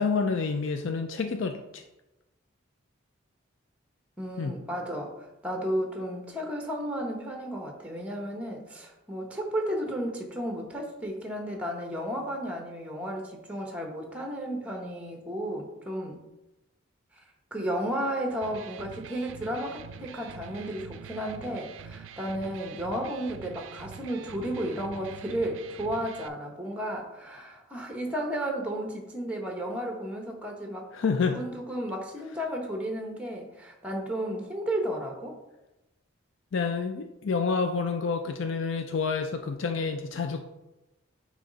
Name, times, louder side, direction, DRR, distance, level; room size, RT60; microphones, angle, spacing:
voice 1, 0.0-1.8 4.4-4.5 30.9-31.4 36.5-40.4, left 5 dB, 75° left, 6 dB, 0.4 m, -28 dB
voice 2, 4.2-16.2 17.2-17.3 17.5-30.8 31.3-35.4, right 1 dB, 5° right, 2 dB, 1.0 m, -33 dB
Electric guitar, 18.3-26.3, right 7 dB, 75° right, 0.4 m, -45 dB
9.3 x 3.1 x 3.9 m, 0.97 s
head